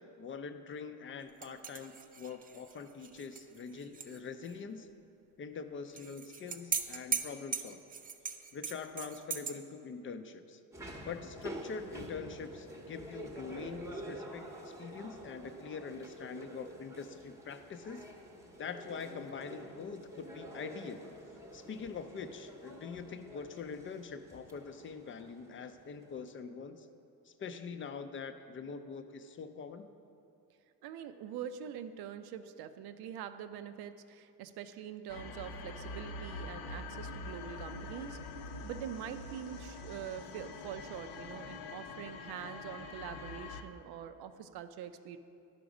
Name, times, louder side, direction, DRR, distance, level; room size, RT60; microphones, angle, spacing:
voice 1, 0.0-4.9 5.4-7.8 8.5-10.6 11.0-18.1 18.6-21.1 21.5-26.9 27.3-29.9, left 5 dB, 35° left, 8 dB, 0.4 m, -44 dB
sound 1, 1.4-4.2 4.5-4.6 5.9-9.5, right 6 dB, 25° right, 0.4 m, -39 dB
sound 2, 10.7-26.3, right 1 dB, 10° right, 0.8 m, -48 dB
voice 2, 30.8-38.2 38.6-45.2, right 9 dB, 85° right, 10 dB, 0.6 m, -44 dB
sound 3, 35.1-43.6, left 3 dB, 85° left, 0.8 m, -44 dB
11.5 x 5.1 x 4.9 m, 2.6 s
cardioid pair, 130°, 37 cm